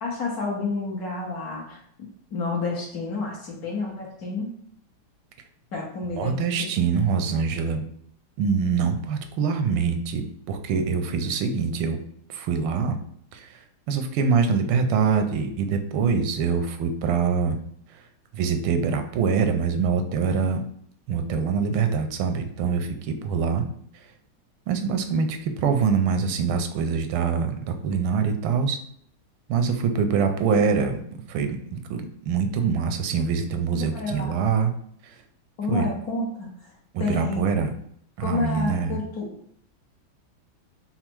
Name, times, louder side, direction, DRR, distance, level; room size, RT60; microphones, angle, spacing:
voice 1, 0.0-4.5 5.7-6.4 33.7-34.4 35.6-36.5 37.0-37.4 38.2-39.3, left 3 dB, 60° left, -2 dB, 1.1 m, -29 dB
voice 2, 6.2-7.8 8.4-12.0 12.3-13.0 13.3-17.6 17.9-18.0 18.3-20.6 21.1-23.6 23.9-24.0 24.7-28.8 29.5-31.0 31.3-34.7 35.0-35.2 35.7-35.9 36.9-37.7 38.2-39.0, right 6 dB, 85° right, 6 dB, 1.4 m, -24 dB
4.2 x 2.0 x 4.4 m, 0.65 s
omnidirectional pair, 2.2 m